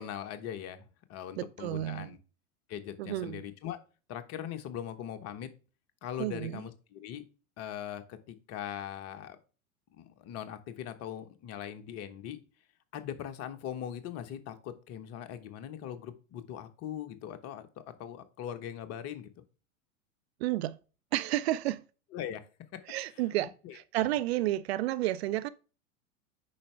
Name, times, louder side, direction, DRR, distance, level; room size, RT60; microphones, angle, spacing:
voice 1, 0.0-2.2 2.7-3.8 4.1-5.5 6.0-7.2 7.6-9.4 9.9-12.4 12.9-19.3 22.1-22.4 23.2-23.3 23.6-23.8, left 10 dB, 35° left, 1.2 m, -40 dB
voice 2, 1.4-2.1 3.0-3.4 6.2-6.6 20.4-20.8 21.1-21.8 22.9-25.5, right 15 dB, 50° right, 0.5 m, -31 dB
8.5 x 5.7 x 3.3 m
figure-of-eight pair, 95°, 43 cm